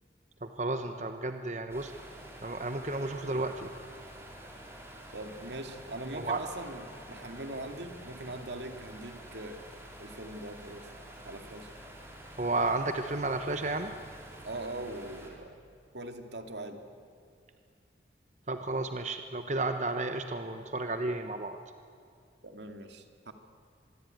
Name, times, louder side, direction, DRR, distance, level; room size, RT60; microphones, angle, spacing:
voice 1, 0.4-1.9 2.4-3.7 6.2-6.4 12.4-13.9 18.5-21.6, right 2 dB, 40° right, 7 dB, 1.0 m, -32 dB
sound 1, 1.7-15.3, right 1 dB, 15° right, 4.1 m, -48 dB
voice 2, 5.1-9.6 10.0-10.9 11.3-11.7 14.4-15.5 15.9-16.8 22.4-23.3, right 1 dB, 80° right, 6 dB, 2.3 m, -41 dB
25.5 x 22.0 x 9.3 m, 2.3 s
head